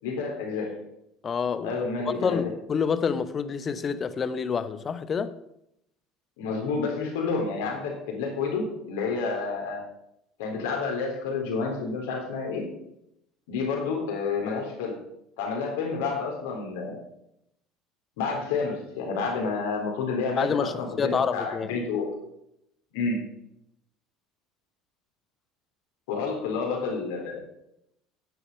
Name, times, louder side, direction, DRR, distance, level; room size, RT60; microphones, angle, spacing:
voice 1, 0.0-0.7 1.6-2.4 6.4-9.8 10.4-12.7 13.5-15.0 15.4-17.0 18.2-22.1 22.9-23.2 26.1-27.4, left 4 dB, 60° left, 3.8 m, -29 dB
voice 2, 1.2-1.8 2.1-5.4 20.4-21.8, left 6 dB, 30° left, 0.9 m, -28 dB
11.0 x 10.0 x 5.4 m
figure-of-eight pair, 65°, 0 cm